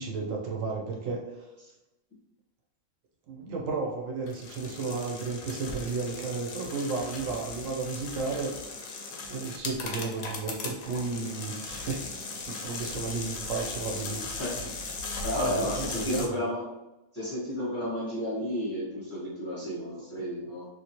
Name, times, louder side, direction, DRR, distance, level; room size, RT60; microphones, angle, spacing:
voice 1, 0.0-1.5 3.3-8.5 9.3-12.0 12.5-14.3 14.6-14.7 15.3-16.4, right 4 dB, 70° right, -1 dB, 1.0 m, -33 dB
sound 1, 4.3-16.3, left 3 dB, 75° left, 1.0 m, -38 dB
voice 2, 15.2-16.6 17.1-20.7, equal, 15° left, -9 dB, 0.7 m, -32 dB
3.0 x 2.7 x 2.8 m, 0.98 s
omnidirectional pair, 1.5 m